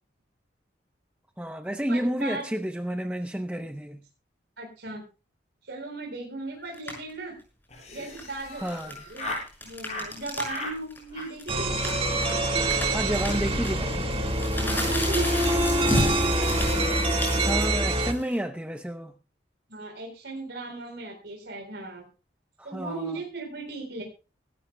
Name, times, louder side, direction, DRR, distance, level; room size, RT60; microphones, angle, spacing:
voice 1, 1.4-4.0 8.6-9.0 12.9-14.1 17.4-19.1 22.6-23.2, equal, 5° right, 0.7 m, -30 dB
voice 2, 1.9-2.4 4.6-5.0 5.6-7.3 7.9-9.4 9.6-11.7 14.5-16.3 19.7-22.0 22.6-24.0, right 3 dB, 65° right, 4.0 m, -37 dB
sound 1, 6.7-7.1 8.0-10.6 10.9-11.0 11.4-18.4, left 1 dB, 10° left, 6.3 m, -32 dB
Laughter, 7.7-9.5 9.8-10.1 10.4-10.8 11.1-11.5 11.8-12.0 12.2-12.4 12.6-12.7 13.0-13.1 13.4-13.7, left 1 dB, 35° left, 7.6 m, -38 dB
sound 2, 11.5-18.1, right 1 dB, 30° right, 1.8 m, -25 dB
24.5 x 13.0 x 2.2 m
head